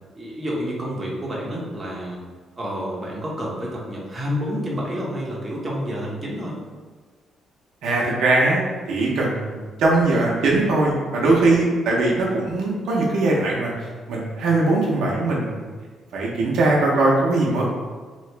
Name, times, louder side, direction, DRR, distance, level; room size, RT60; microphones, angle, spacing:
voice 1, 0.1-2.2 2.6-6.6, equal, 25° right, -4 dB, 0.8 m, -29 dB
voice 2, 7.8-8.6 8.9-13.7 14.1-15.6 16.1-17.6, right 2 dB, 75° right, -4 dB, 0.7 m, -20 dB
2.8 x 2.3 x 3.2 m, 1.4 s
cardioid pair, 90°, 0 cm